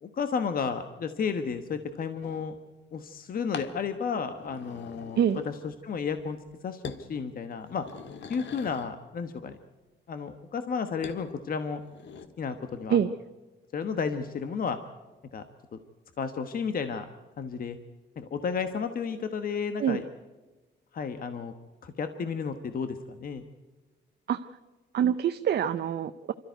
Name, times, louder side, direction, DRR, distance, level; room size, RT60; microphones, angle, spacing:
voice 1, 0.0-2.5 2.9-5.2 5.4-6.4 6.6-7.9 8.3-9.6 10.1-11.8 12.4-13.0 13.7-14.8 15.3-15.4 15.7-15.8 16.2-17.1 17.4-17.8 18.2-20.0 20.9-21.5 21.8-23.4, left 6 dB, 50° left, 8 dB, 1.2 m, -32 dB
sound 1, 2.2-2.5 3.5-3.8 4.3-5.8 6.1-6.5 6.8-7.1 7.5-9.0 11.0-11.2 11.7-12.3, left 6 dB, 70° left, 1.7 m, -43 dB
voice 2, 24.9-26.3, right 9 dB, 60° right, 9 dB, 0.7 m, -25 dB
26.5 x 13.5 x 9.2 m, 1.2 s
cardioid pair, 125°, 19 cm